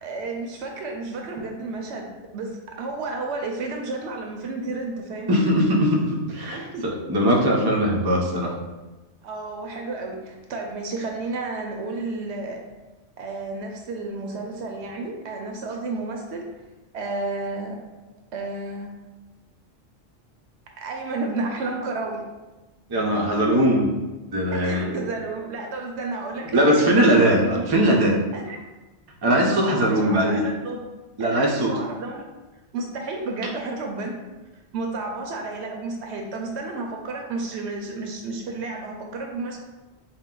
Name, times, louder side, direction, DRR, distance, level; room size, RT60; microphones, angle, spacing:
voice 1, 0.0-2.1 2.3-5.3 6.5-6.9 9.2-12.6 13.2-16.4 16.9-17.8 18.3-18.9 20.8-22.2 24.5-27.7 28.3-28.6 29.2-30.8 31.2-32.2 32.7-34.2 34.7-39.6, right 3 dB, 70° right, 1 dB, 0.8 m, -32 dB
voice 2, 5.3-6.7 7.1-8.5 22.9-23.9 24.3-24.9 26.5-28.2 29.2-30.4 31.2-31.7, equal, 30° right, -1 dB, 0.4 m, -20 dB
4.4 x 2.2 x 3.7 m, 1.1 s
omnidirectional pair, 1.2 m